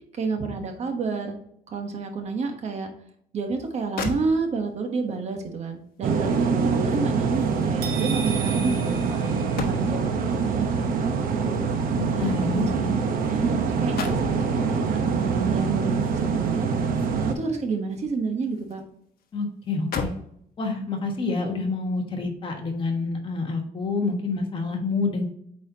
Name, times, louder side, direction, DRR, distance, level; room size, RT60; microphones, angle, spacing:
voice 1, 0.1-1.4 1.7-2.9 3.3-11.6 12.1-12.7 13.3-15.0 15.5-16.7 17.3-18.8, right 4 dB, 45° right, 4 dB, 1.1 m, -30 dB
sound 1, 3.6-3.7 4.0-4.8 6.2-10.2 11.3-13.4 13.7-14.4 15.9-17.5 17.9-18.9 19.2-19.3 19.7-20.4 21.1-21.3, left 4 dB, 80° left, 1.0 m, -37 dB
sound 2, 6.0-17.3, right 5 dB, 70° right, 0.9 m, -25 dB
sound 3, 7.8-10.0, right 7 dB, 90° right, 1.9 m, -36 dB
voice 2, 12.0-12.9 19.3-20.1 20.6-25.3, left 3 dB, 35° left, 2 dB, 1.3 m, -28 dB
8.5 x 4.3 x 2.8 m, 0.70 s
cardioid pair, 175°, 15 cm